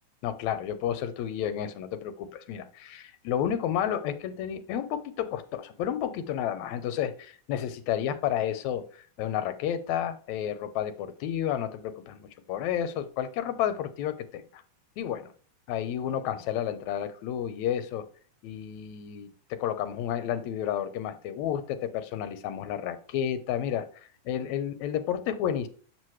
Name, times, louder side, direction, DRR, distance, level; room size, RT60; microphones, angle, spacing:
voice 1, 0.2-8.8 9.2-14.6 15.0-15.3 15.7-18.0 18.4-23.9 24.3-25.7, left 10 dB, 80° left, 10 dB, 2.1 m, -31 dB
8.0 x 6.0 x 3.1 m, 0.43 s
omnidirectional pair, 3.3 m